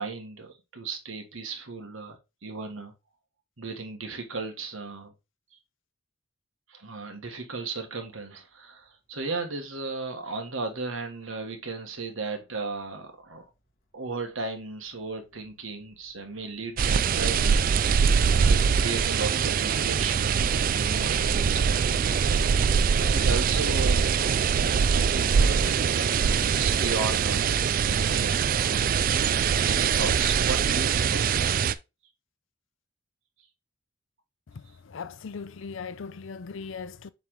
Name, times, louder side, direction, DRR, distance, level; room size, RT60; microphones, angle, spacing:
voice 1, 0.0-2.9 3.6-5.1 6.7-13.4 13.9-22.6 23.0-28.4 29.1-31.4, right 3 dB, 80° right, 1.5 m, -36 dB
Train / Subway metro underground, 13.4-13.5 14.3-14.6 14.9-27.4, equal, 50° left, 1.7 m, -47 dB
sound 1, 16.8-31.7, right 6 dB, 45° right, 0.3 m, -23 dB
voice 2, 34.5-37.1, left 5 dB, 70° left, 0.5 m, -39 dB
7.4 x 3.5 x 3.7 m
head